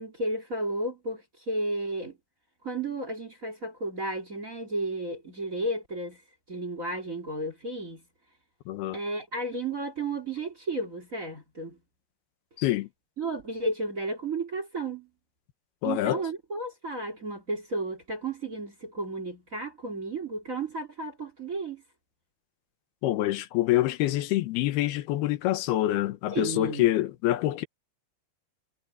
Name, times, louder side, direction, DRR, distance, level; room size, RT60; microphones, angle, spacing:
voice 1, 0.0-2.2 2.6-6.2 6.5-8.0 8.9-11.8 13.2-15.1 15.8-21.8 26.3-26.9, right 2 dB, 25° right, 2.0 m, -33 dB
voice 2, 8.7-9.0 12.6-12.9 15.8-16.2 23.0-27.6, left 15 dB, 70° left, 2.8 m, -26 dB
omnidirectional pair, 5.2 m